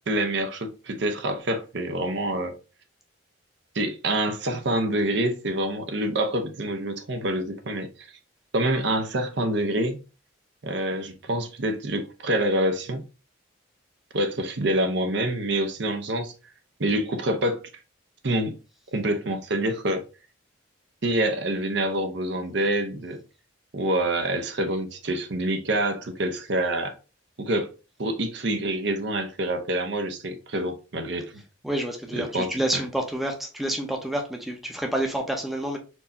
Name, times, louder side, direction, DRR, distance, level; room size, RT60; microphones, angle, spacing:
voice 1, 0.1-2.5 3.7-8.1 8.5-10.0 10.6-13.0 14.1-16.3 16.8-17.6 18.2-18.6 18.9-20.0 21.0-23.2 23.7-26.9 27.4-27.7 28.0-31.4 32.1-32.8, right 1 dB, 60° right, 0.7 m, -26 dB
voice 2, 31.6-35.8, right 1 dB, ahead, 0.7 m, -28 dB
4.5 x 2.7 x 4.1 m
head